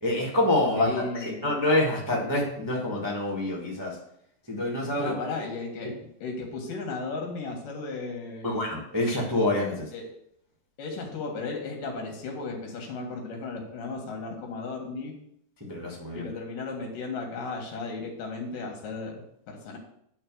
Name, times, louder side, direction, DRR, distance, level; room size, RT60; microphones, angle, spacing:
voice 1, 0.0-0.9 1.2-4.0 4.5-5.1 8.4-9.8 15.7-16.3, left 1 dB, 10° right, -3 dB, 1.0 m, -26 dB
voice 2, 0.8-1.5 5.0-5.9 6.2-8.7 9.9-10.1 10.8-15.1 16.1-19.8, left 3 dB, 85° left, 1 dB, 3.5 m, -35 dB
10.0 x 4.3 x 6.3 m, 0.73 s
omnidirectional pair, 3.8 m